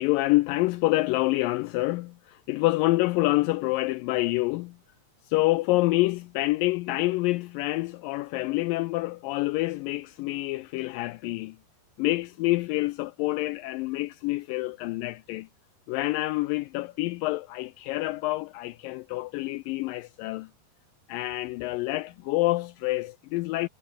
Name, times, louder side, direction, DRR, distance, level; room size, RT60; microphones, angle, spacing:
voice 1, 0.0-4.8 5.2-11.6 12.0-15.5 15.9-20.5 21.1-23.7, left 20 dB, 90° left, 1.9 m, -27 dB
omnidirectional pair, 4.5 m